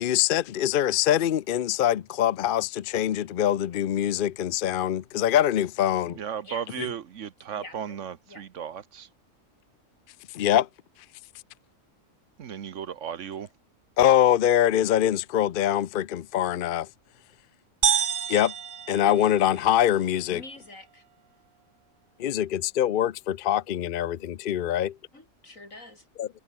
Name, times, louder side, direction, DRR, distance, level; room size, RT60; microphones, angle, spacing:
voice 1, 0.0-6.2 6.8-6.9 10.3-10.7 14.0-16.9 18.3-18.5 18.9-20.4 22.2-25.0 26.2-26.3, left 11 dB, 55° left, 0.6 m, -24 dB
voice 2, 6.2-9.1 12.4-13.5, right 8 dB, 70° right, 1.3 m, -35 dB
voice 3, 7.5-8.0 8.3-8.5 20.3-21.0 25.1-26.1, left 2 dB, 85° left, 6.5 m, -45 dB
sound 1, 17.8-19.8, right 8 dB, 90° right, 1.6 m, -28 dB
omnidirectional pair, 1.4 m